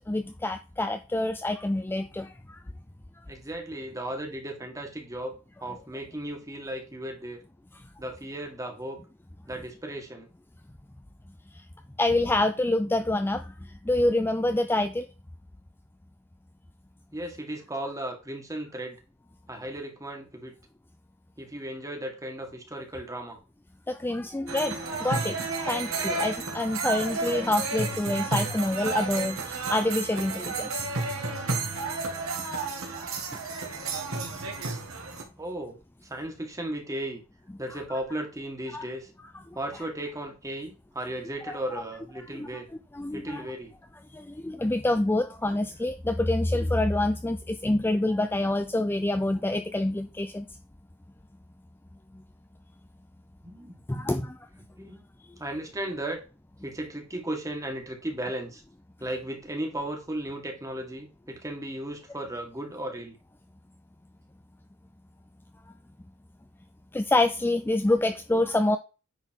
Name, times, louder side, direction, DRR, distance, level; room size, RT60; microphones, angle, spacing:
voice 1, 0.1-2.6 12.0-15.1 23.9-30.9 31.7-31.8 38.7-38.8 39.5-39.6 41.5-41.6 42.3-42.5 42.9-43.4 44.1-50.5 53.9-54.4 54.8-54.9 66.9-68.8, left 2 dB, 10° left, 0.4 m, -27 dB
voice 2, 3.3-5.4 5.6-7.4 8.0-9.0 9.4-10.3 17.1-19.0 19.5-20.5 21.4-23.4 33.4-33.5 35.4-35.8 36.1-37.2 37.6-39.1 39.6-42.7 43.1-43.7 53.4-54.2 54.8-55.0 55.4-56.2 56.6-58.6 59.0-63.2, right 1 dB, 15° right, 1.9 m, -35 dB
sound 1, 24.5-35.2, right 3 dB, 75° right, 2.1 m, -31 dB
9.5 x 4.1 x 4.6 m
head